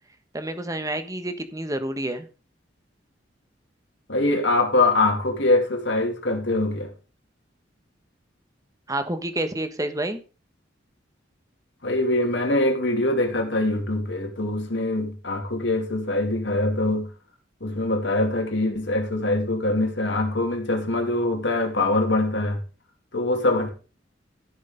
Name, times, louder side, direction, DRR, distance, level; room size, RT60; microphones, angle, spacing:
voice 1, 0.3-2.3 8.9-10.2, right 1 dB, 20° right, 1.3 m, -29 dB
voice 2, 4.1-6.9 11.8-17.1 17.6-22.6 23.1-23.7, left 2 dB, 75° left, 2.7 m, -23 dB
13.5 x 6.6 x 5.1 m
head